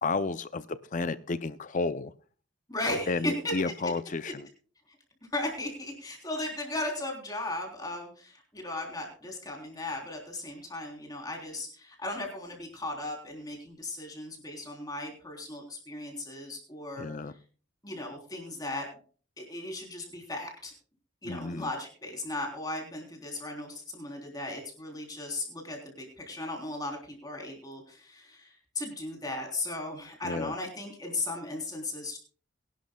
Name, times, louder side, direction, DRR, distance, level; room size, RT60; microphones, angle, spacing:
voice 1, 0.0-2.1 3.1-4.5 17.0-17.3 21.2-21.7 30.2-30.5, left 3 dB, 40° left, 14 dB, 0.5 m, -32 dB
voice 2, 2.7-3.5 4.2-4.3 5.3-17.1 17.8-18.9 19.4-20.7 21.2-32.2, left 2 dB, 20° left, 2 dB, 3.5 m, -36 dB
22.0 x 11.5 x 2.3 m, 0.39 s
head